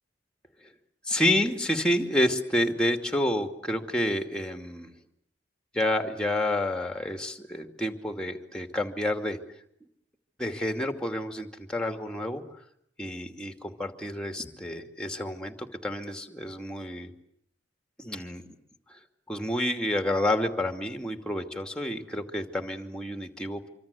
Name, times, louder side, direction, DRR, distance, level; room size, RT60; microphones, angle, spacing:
voice 1, 1.1-4.9 5.7-9.4 10.4-12.4 13.0-17.1 18.0-18.4 18.9-19.0 19.3-23.7, left 1 dB, 5° left, 6 dB, 2.5 m, -29 dB
26.0 x 25.5 x 8.4 m, 0.72 s
head